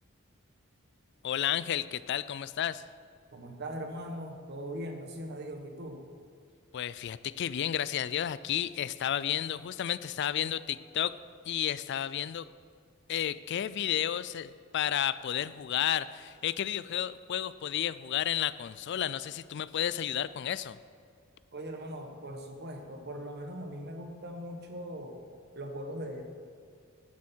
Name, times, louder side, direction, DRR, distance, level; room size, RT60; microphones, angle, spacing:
voice 1, 1.2-2.8 6.7-11.2 11.5-12.5 13.1-20.8, left 10 dB, 55° left, 16 dB, 0.3 m, -32 dB
voice 2, 3.3-6.0 21.5-25.2 25.5-26.2, equal, 50° right, 4 dB, 1.4 m, -40 dB
12.5 x 10.5 x 4.5 m, 2.2 s
head